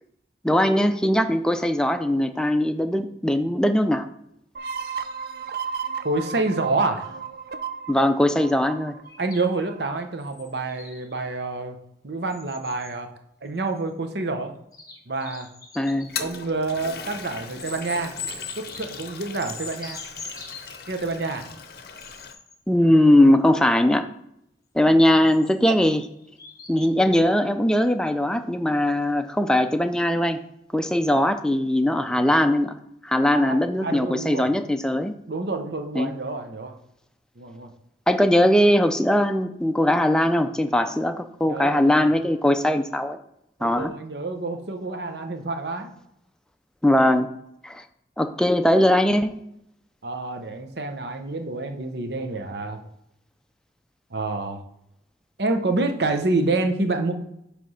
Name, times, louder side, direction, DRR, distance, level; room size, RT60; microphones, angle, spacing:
voice 1, 0.4-4.0 7.9-8.9 15.8-16.1 22.7-24.1 24.7-26.1 26.7-30.4 30.7-32.7 33.0-35.1 35.9-36.1 38.1-43.2 43.6-43.9 46.8-47.3 47.6-47.8 48.2-49.3, left 1 dB, 5° left, 7 dB, 0.4 m, -20 dB
sound 1, 4.5-10.0, right 6 dB, 55° right, 0.4 m, -34 dB
voice 2, 6.0-7.1 9.2-11.8 12.0-13.1 13.4-14.5 15.1-15.5 16.2-18.1 18.5-20.0 20.9-21.5 33.3-34.5 35.3-36.8 37.4-37.7 40.8-40.9 41.5-42.1 43.6-45.9 50.0-52.9 54.1-54.6 55.4-57.1, right 3 dB, 75° right, 6 dB, 0.9 m, -28 dB
sound 2, 9.1-11.3 12.3-12.9 13.8-13.9 14.7-16.1 17.6-20.9 22.0-22.6 25.0-26.9, left 4 dB, 20° left, 0.9 m, -41 dB
Toilet flush, 15.9-22.3, left 6 dB, 60° left, 0.6 m, -38 dB
7.9 x 3.4 x 5.6 m, 0.78 s
head